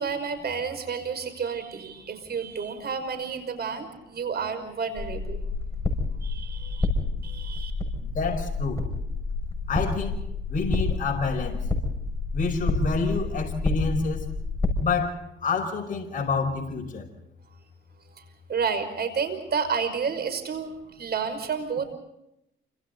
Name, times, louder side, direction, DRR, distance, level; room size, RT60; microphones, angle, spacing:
voice 1, 0.0-5.4 6.2-6.9 7.2-7.7 18.5-21.9, right 6 dB, 55° right, 5.6 m, -30 dB
sound 1, 5.0-14.7, left 3 dB, 15° left, 6.4 m, -29 dB
voice 2, 8.0-8.9 9.7-10.2 10.5-11.7 12.3-14.3 14.8-17.1, left 4 dB, 40° left, 5.6 m, -28 dB
29.0 x 26.5 x 4.0 m
cardioid pair, 90°, 20 cm